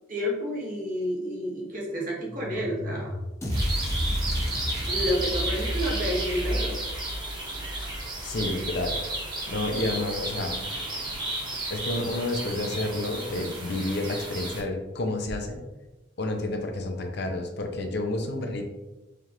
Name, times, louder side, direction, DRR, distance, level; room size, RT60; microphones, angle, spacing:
voice 1, 0.1-3.1 4.8-6.8, equal, 45° right, -3 dB, 1.1 m, -30 dB
sound 1, 2.3-11.0, equal, 30° left, 1.1 m, -36 dB
sound 2, 3.4-7.6, equal, 15° left, 0.6 m, -32 dB
sound 3, 3.5-14.6, right 2 dB, 25° right, 1.0 m, -33 dB
voice 2, 8.2-9.0 9.5-10.6 11.7-15.6 16.2-18.7, left 2 dB, 60° left, 3 dB, 0.6 m, -30 dB
4.9 x 2.4 x 2.9 m, 1.0 s
head